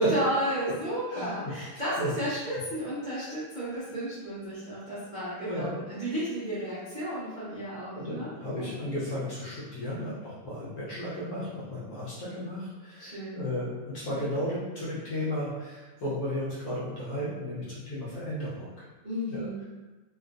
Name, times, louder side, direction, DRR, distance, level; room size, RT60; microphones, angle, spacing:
voice 1, 0.1-8.3 8.6-8.7 9.9-10.1 13.0-13.5 19.0-19.6, equal, 90° right, -12 dB, 0.4 m, -33 dB
voice 2, 5.4-5.7 7.9-18.7 19.3-19.5, equal, 60° left, -8 dB, 1.0 m, -33 dB
3.6 x 2.3 x 2.4 m, 1.2 s
omnidirectional pair, 2.3 m